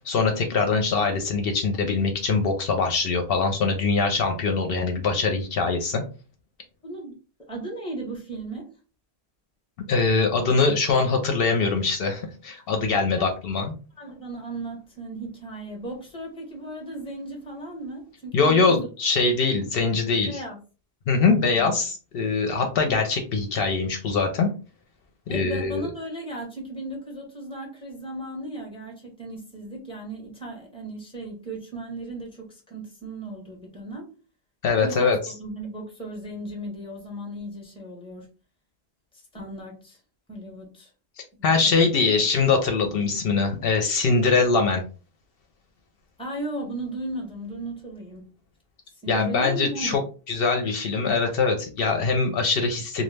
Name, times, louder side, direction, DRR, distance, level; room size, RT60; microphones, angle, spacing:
voice 1, 0.0-6.0 9.9-13.7 18.3-20.4 21.1-24.5 25.3-25.9 34.6-35.3 41.4-44.8 49.1-50.0 50.3-53.0, left 4 dB, 70° left, 0.7 m, -23 dB
voice 2, 6.8-7.1 7.5-8.7 13.1-13.3 14.0-18.9 19.4-19.7 20.3-20.6 21.5-21.8 25.3-34.1 34.7-38.3 39.1-40.0 40.3-40.9 41.4-41.9 42.2-42.3 46.2-48.3 49.0-50.0, right 1 dB, 5° left, 0.7 m, -36 dB
2.3 x 2.1 x 3.2 m
omnidirectional pair, 1.1 m